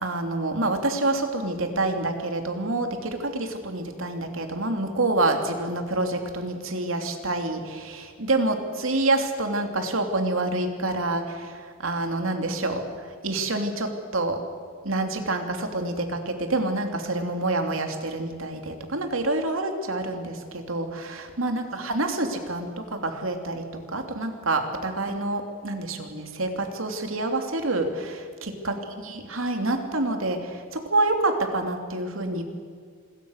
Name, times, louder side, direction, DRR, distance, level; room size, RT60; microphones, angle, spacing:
voice 1, 0.0-12.8 13.2-14.4 14.8-28.8 29.0-32.4, right 2 dB, 70° right, 5 dB, 3.0 m, -27 dB
27.0 x 22.0 x 6.6 m, 2.1 s
head